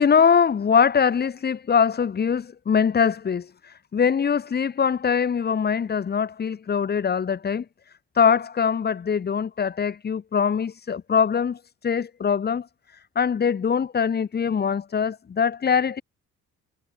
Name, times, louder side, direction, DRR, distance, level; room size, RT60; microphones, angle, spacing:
voice 1, 0.0-7.6 8.1-12.7 13.2-16.0, left 7 dB, 35° left, 0.9 m, -22 dB
cardioid pair, 90°, 30 cm